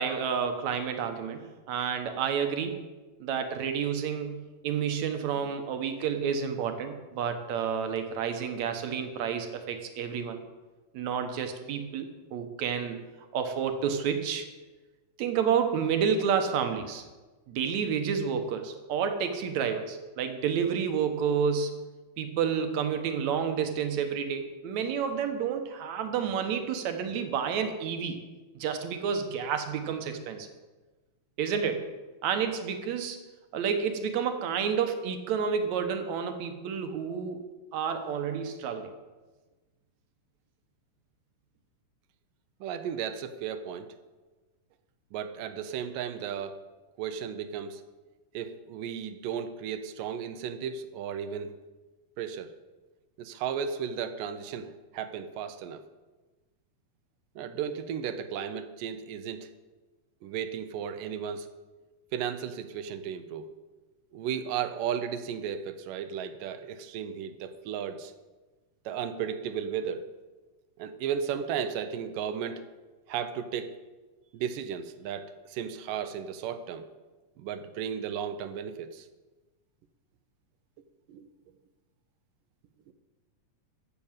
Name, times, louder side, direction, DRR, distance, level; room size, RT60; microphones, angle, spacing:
voice 1, 0.0-2.8 3.2-10.4 10.9-13.0 13.3-14.5 15.2-17.1 17.5-21.7 22.2-28.2 28.6-30.5 31.4-31.8 32.2-33.2 33.5-37.4 37.7-38.9, right 7 dB, 65° right, 7 dB, 2.2 m, -30 dB
voice 2, 42.6-43.9 45.1-46.6 47.0-47.8 48.3-51.6 52.2-52.5 53.2-54.7 54.9-55.8 57.4-59.5 60.2-61.5 62.1-63.5 64.1-68.1 68.9-70.1 70.8-72.7 73.1-73.8 74.3-76.9 77.4-79.1 81.1-81.3 82.9-83.0, right 8 dB, 85° right, 10 dB, 2.4 m, -34 dB
14.5 x 6.9 x 7.3 m, 1.2 s
omnidirectional pair, 3.8 m